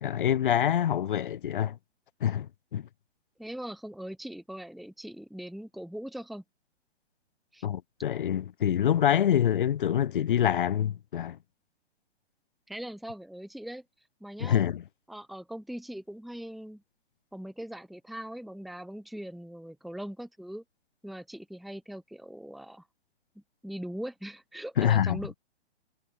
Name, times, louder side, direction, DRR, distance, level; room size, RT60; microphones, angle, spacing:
voice 1, 0.0-1.8 2.2-2.9 7.6-11.4 14.4-14.8 24.8-25.2, left 10 dB, 45° left, 2.8 m, -26 dB
voice 2, 3.4-6.4 7.5-7.7 12.7-13.8 14.2-14.6 15.1-16.8 17.3-20.6 21.0-22.9 23.6-25.3, right 1 dB, ahead, 1.7 m, -40 dB
figure-of-eight pair, 125°, 35 cm